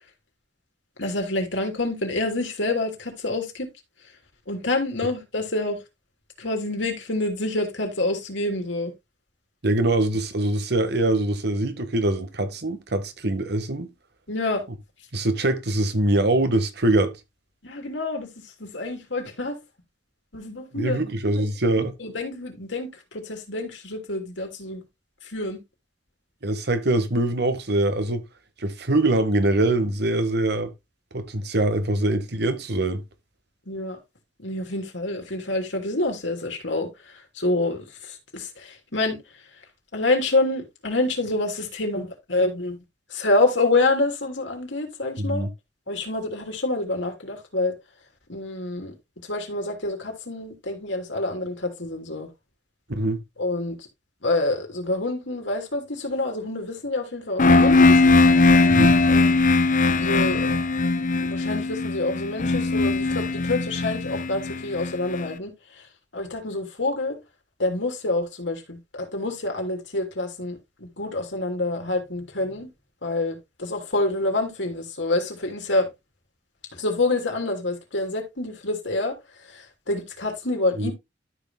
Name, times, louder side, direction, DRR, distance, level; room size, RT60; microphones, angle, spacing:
voice 1, 1.0-3.7 4.5-5.8 6.4-8.9 14.3-14.6 17.6-19.6 20.3-21.0 22.0-24.8 25.2-25.6 33.7-34.0 34.4-39.2 39.9-42.8 43.1-45.5 45.9-47.7 48.3-48.9 49.3-52.3 53.4-53.8 54.2-58.0 59.1-59.4 60.0-60.6 61.0-65.9 66.1-67.2 67.6-72.7 73.0-75.9 76.7-80.9, left 2 dB, 85° left, 3.3 m, -27 dB
voice 2, 9.6-13.9 15.1-17.1 20.7-21.9 26.4-28.2 28.6-30.7 31.1-33.0 45.2-45.5 52.9-53.2 58.7-58.9 80.8-80.9, right 1 dB, 65° right, 1.5 m, -23 dB
sound 1, 57.4-65.2, left 3 dB, 45° left, 0.8 m, -19 dB
13.0 x 6.1 x 2.2 m
head